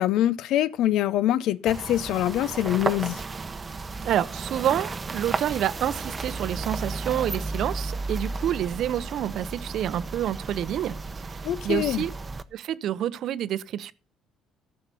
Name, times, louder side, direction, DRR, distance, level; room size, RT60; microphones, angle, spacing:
voice 1, 0.0-3.2 11.4-12.0, left 12 dB, 75° left, 0.5 m, -24 dB
sound 1, 1.7-12.4, right 3 dB, 25° right, 0.8 m, -33 dB
voice 2, 4.0-12.1 12.5-13.9, right 11 dB, 65° right, 0.6 m, -28 dB
14.0 x 5.8 x 6.8 m
cardioid pair, 120°, 0 cm